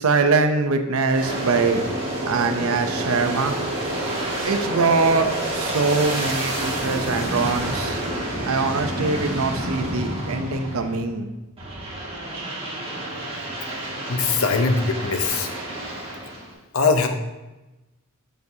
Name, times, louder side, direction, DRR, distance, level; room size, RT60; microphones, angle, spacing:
voice 1, 0.0-1.8 2.3-3.6 4.4-8.0 8.5-11.3, right 4 dB, 80° right, 7 dB, 0.6 m, -23 dB
Aircraft, 1.1-11.1 11.6-16.5, right 1 dB, 25° right, 1.7 m, -29 dB
voice 2, 14.1-15.5 16.7-17.1, left 4 dB, 75° left, 6 dB, 0.7 m, -21 dB
6.9 x 6.4 x 2.8 m, 1.1 s
head